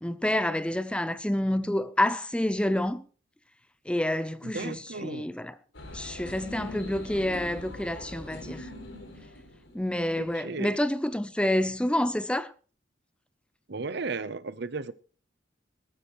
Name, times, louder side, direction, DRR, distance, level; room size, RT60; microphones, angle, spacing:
voice 1, 0.0-3.0 3.9-5.5 5.9-8.7 9.7-12.5, left 1 dB, 5° left, 0.6 m, -28 dB
voice 2, 4.4-5.3 10.2-10.8 13.7-14.9, right 4 dB, 65° right, 0.8 m, -35 dB
sound 1, 5.7-10.2, left 1 dB, 80° left, 4.8 m, -42 dB
21.0 x 12.5 x 3.1 m
head